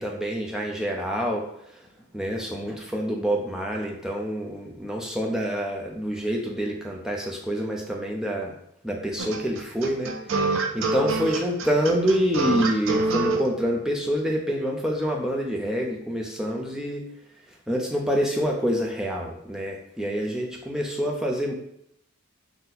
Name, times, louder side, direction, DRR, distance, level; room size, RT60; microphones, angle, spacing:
voice 1, 0.0-1.5 2.1-8.5 8.8-17.0 17.7-21.5, equal, 5° right, -1 dB, 0.4 m, -27 dB
sound 1, 9.2-13.4, right 3 dB, 60° right, 0.4 m, -25 dB
3.8 x 2.1 x 4.1 m, 0.74 s
head